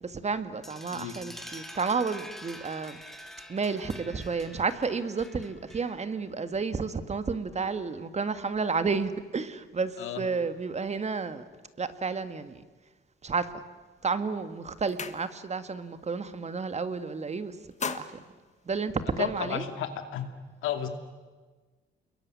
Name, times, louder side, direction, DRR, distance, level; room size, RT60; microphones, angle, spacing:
voice 1, 0.0-3.0 3.5-11.4 11.8-12.6 13.2-13.6 14.0-17.6 17.8-18.2 18.7-19.7, right 4 dB, 35° right, 11 dB, 1.8 m, -31 dB
sound 1, 0.6-6.2, equal, ahead, 2.3 m, -46 dB
sound 2, 14.0-14.2 14.5-15.7 16.0-16.3 16.6-17.2 17.5-19.4, left 5 dB, 35° left, 1.6 m, -40 dB
voice 2, 19.2-20.3 20.6-20.9, left 9 dB, 90° left, 8 dB, 2.6 m, -33 dB
28.0 x 21.5 x 9.7 m, 1.3 s
cardioid pair, 90°, 20 cm